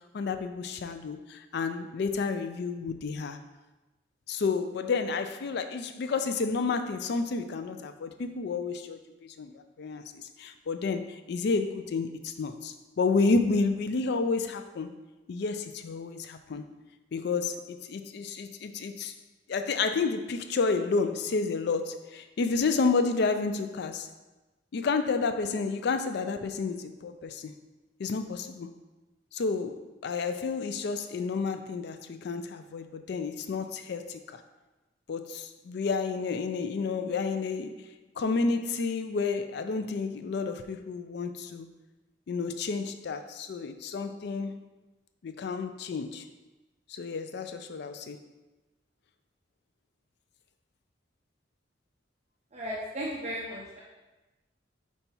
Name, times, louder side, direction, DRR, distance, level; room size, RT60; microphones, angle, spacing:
voice 1, 0.0-3.4 4.3-15.0 15.3-16.6 17.1-19.1 19.5-24.1 24.7-27.5 28.0-28.7 29.3-34.4 35.1-37.7 38.2-41.7 42.3-44.5 45.2-46.2 46.9-48.2, left 4 dB, 60° left, 9 dB, 0.4 m, -30 dB
voice 2, 52.5-53.8, equal, 35° right, -4 dB, 0.7 m, -35 dB
5.3 x 4.5 x 4.4 m, 1.1 s
head